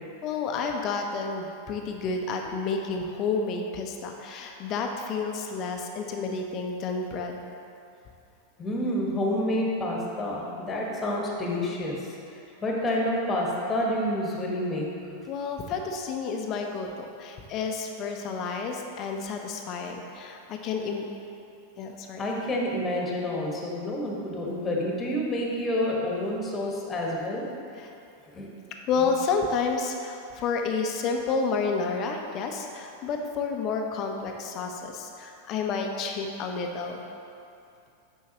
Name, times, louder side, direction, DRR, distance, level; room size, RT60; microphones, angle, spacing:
voice 1, 0.2-7.5 15.3-21.0 21.8-22.3 27.8-27.9 28.9-37.0, left 4 dB, 40° left, 3 dB, 0.8 m, -30 dB
voice 2, 8.6-12.1 12.6-14.9 22.2-27.4 28.3-28.5, left 1 dB, 25° left, -2 dB, 1.5 m, -28 dB
8.4 x 5.6 x 3.0 m, 2.6 s
hypercardioid pair, 95°, 0 cm